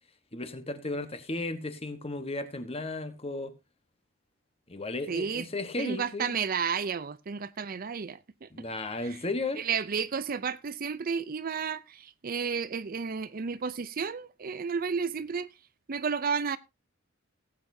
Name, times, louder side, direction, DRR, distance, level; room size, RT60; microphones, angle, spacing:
voice 1, 0.3-3.5 4.7-6.4 8.5-9.7, left 2 dB, 30° left, 1.2 m, -34 dB
voice 2, 5.1-5.5 5.8-8.6 9.0-9.2 9.6-15.5 15.9-16.6, right 6 dB, 45° right, 0.5 m, -32 dB
18.0 x 8.5 x 2.7 m
head